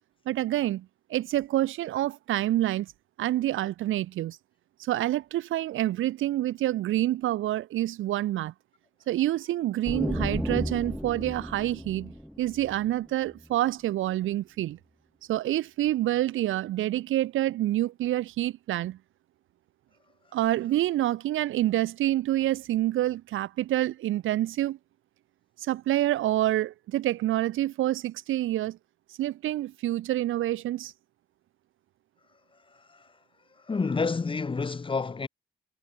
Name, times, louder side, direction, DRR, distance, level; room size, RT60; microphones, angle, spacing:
voice 1, 0.3-2.9 3.2-4.4 4.8-8.5 9.1-12.1 12.4-14.8 15.3-19.0 20.3-24.8 25.6-28.8 29.2-30.9, right 14 dB, 85° right, 4.0 m, -27 dB
sound 1, 9.8-13.5, equal, ahead, 3.0 m, -33 dB
voice 2, 33.7-35.3, left 4 dB, 25° left, 1.5 m, -28 dB
cardioid pair, 90°, 20 cm